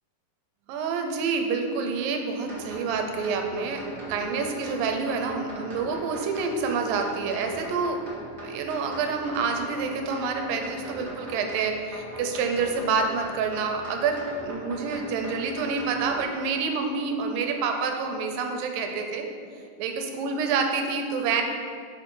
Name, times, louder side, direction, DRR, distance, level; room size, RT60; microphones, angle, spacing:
voice 1, 0.7-8.0 8.4-19.3 19.8-21.4, right 5 dB, 80° right, 4 dB, 2.4 m, -28 dB
sound 1, 2.5-16.2, equal, 30° right, 1.3 m, -41 dB
7.3 x 6.5 x 5.4 m, 2.2 s
omnidirectional pair, 4.2 m